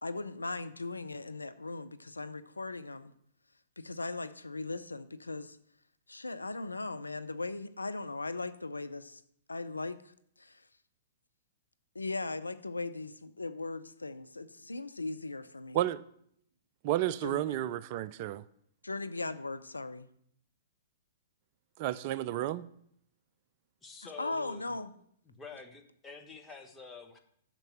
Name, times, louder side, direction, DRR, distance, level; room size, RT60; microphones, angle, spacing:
voice 1, 0.0-3.1 3.8-5.6 6.1-9.2 9.5-10.0 10.4-10.6 11.9-15.8 17.2-17.6 18.8-20.1 24.2-24.9, left 3 dB, 85° left, 0.5 m, -38 dB
voice 2, 16.8-18.4 21.8-22.7, right 13 dB, 40° right, 0.4 m, -31 dB
voice 3, 23.8-24.7 25.3-27.2, left 4 dB, 15° left, 1.2 m, -48 dB
6.6 x 6.0 x 7.2 m
figure-of-eight pair, 115°, 0 cm